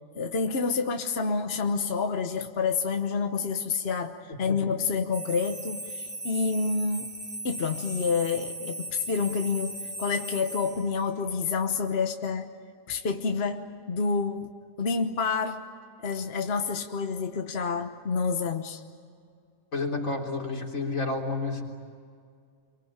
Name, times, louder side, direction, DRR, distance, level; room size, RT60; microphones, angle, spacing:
voice 1, 0.1-7.1 7.4-12.5 12.9-14.5 14.8-15.6 16.0-18.8, left 5 dB, 50° left, 5 dB, 1.4 m, -28 dB
sound 1, 5.1-10.9, right 1 dB, 5° right, 4.4 m, -38 dB
voice 2, 19.7-21.6, left 3 dB, 90° left, 0 dB, 4.1 m, -30 dB
27.0 x 24.5 x 8.8 m, 2.2 s
omnidirectional pair, 1.4 m